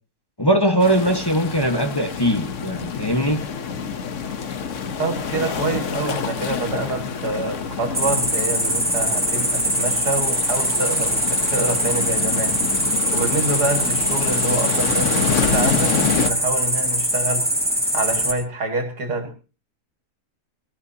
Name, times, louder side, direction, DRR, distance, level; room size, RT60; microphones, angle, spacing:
voice 1, 0.4-3.4, right 1 dB, 15° left, 5 dB, 1.3 m, -20 dB
sound 1, 0.8-16.3, left 6 dB, 55° left, 1.3 m, -27 dB
voice 2, 4.8-12.6 13.1-17.5 17.9-19.3, right 2 dB, 80° right, 6 dB, 2.8 m, -26 dB
Cricket, 7.9-18.3, right 1 dB, 5° right, 3.6 m, -22 dB
20.5 x 19.0 x 2.8 m, 0.34 s
omnidirectional pair, 1.7 m